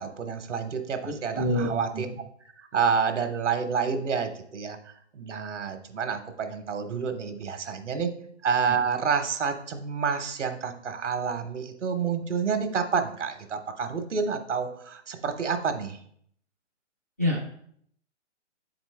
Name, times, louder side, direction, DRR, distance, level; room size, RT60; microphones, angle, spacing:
voice 1, 0.0-2.1 2.6-4.8 5.1-8.1 8.4-16.0, right 6 dB, 75° right, 7 dB, 1.0 m, -29 dB
voice 2, 1.0-2.1 17.2-17.4, left 1 dB, 15° left, -3 dB, 0.4 m, -27 dB
7.2 x 4.5 x 3.2 m, 0.65 s
hypercardioid pair, 145°, 36 cm